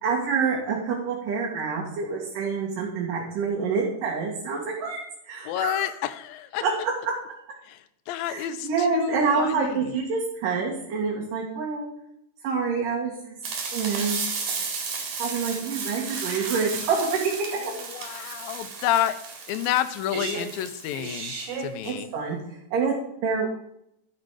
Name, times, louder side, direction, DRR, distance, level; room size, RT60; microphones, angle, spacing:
voice 1, 0.0-5.9 6.6-6.7 8.3-11.9 12.4-13.4 13.7-14.2 15.2-17.5 21.9-22.4 22.7-23.0 23.2-23.5, right 5 dB, 65° right, -3 dB, 3.2 m, -27 dB
voice 2, 5.4-6.6 7.6-9.9 17.5-19.2 19.5-22.1, left 12 dB, 80° left, 13 dB, 2.3 m, -30 dB
sound 1, 13.4-21.9, right 5 dB, 90° right, 4.1 m, -33 dB
12.0 x 7.7 x 4.8 m, 0.77 s
omnidirectional pair, 4.2 m